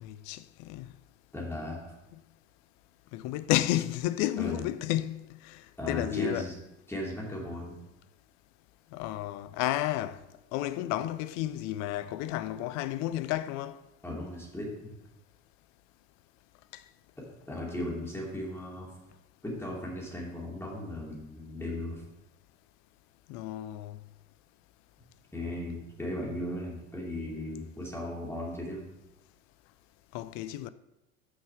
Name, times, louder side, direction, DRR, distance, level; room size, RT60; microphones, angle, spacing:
voice 1, 0.0-0.9 2.1-2.2 3.1-6.5 8.9-10.2 10.5-13.8 16.7-16.8 23.3-24.0 30.1-30.7, left 14 dB, 45° left, 0.5 m, -32 dB
voice 2, 1.3-1.9 4.4-4.6 5.8-6.5 6.9-7.8 14.0-14.9 17.5-18.9 19.4-22.0 25.3-28.9, left 1 dB, 5° left, 2.9 m, -36 dB
6.5 x 5.5 x 5.9 m
figure-of-eight pair, 70°, 40 cm